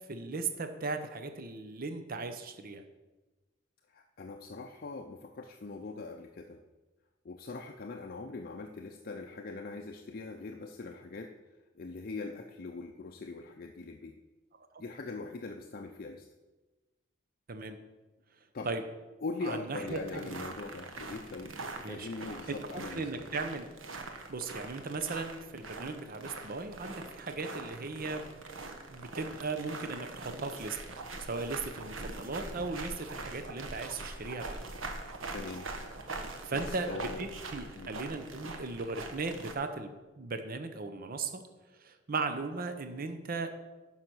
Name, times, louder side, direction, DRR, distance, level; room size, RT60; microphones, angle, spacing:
voice 1, 0.1-2.8 17.5-17.8 18.6-18.8 19.4-20.3 21.8-22.1 22.5-23.7 24.3-28.4 28.9-30.8 31.2-34.6 36.4-41.4 41.8-43.6, right 3 dB, 50° right, 8 dB, 0.8 m, -37 dB
voice 2, 3.9-6.6 7.2-11.4 11.7-14.2 14.8-16.3 18.5-18.7 19.2-23.3 35.3-35.7 36.5-37.3 37.7-37.9, left 3 dB, 50° left, 3 dB, 0.6 m, -41 dB
sound 1, 19.9-39.5, right 3 dB, 90° right, 1.2 m, -43 dB
10.0 x 5.8 x 6.1 m, 1.2 s
head